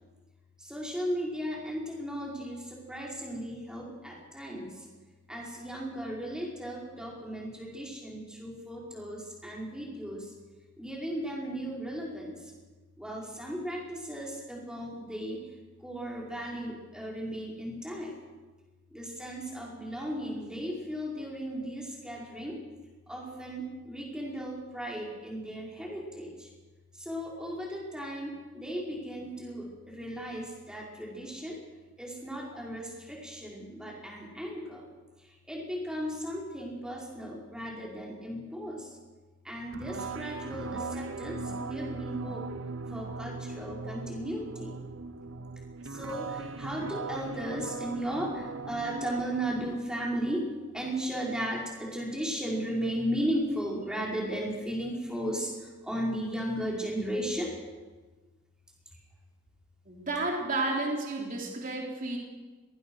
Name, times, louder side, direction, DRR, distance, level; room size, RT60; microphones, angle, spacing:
voice 1, 0.6-4.8 5.3-10.3 10.8-12.4 13.0-15.4 15.8-18.1 18.9-22.6 23.1-26.5 27.0-31.6 32.0-34.8 35.5-38.9 39.4-42.5 42.9-44.8 45.9-50.5 50.7-55.5 55.8-57.5, equal, 5° right, -2 dB, 5.1 m, -36 dB
sound 1, 39.7-49.8, right 3 dB, 70° right, 0.8 m, -39 dB
voice 2, 59.9-62.2, right 2 dB, 40° right, -1 dB, 3.6 m, -31 dB
23.0 x 19.5 x 6.4 m, 1.3 s
head